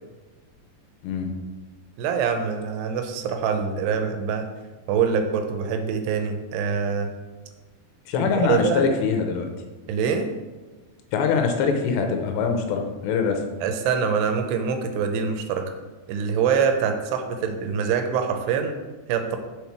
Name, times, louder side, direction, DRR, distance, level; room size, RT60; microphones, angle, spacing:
voice 1, 2.0-4.5 4.9-7.1 8.2-8.8 9.9-10.3 13.6-15.7 16.1-18.8 19.1-19.4, right 6 dB, 85° right, 6 dB, 2.7 m, -24 dB
voice 2, 8.1-9.5 11.1-13.4, left 5 dB, 80° left, 4 dB, 2.9 m, -23 dB
7.0 x 4.4 x 4.6 m, 1.2 s
omnidirectional pair, 4.9 m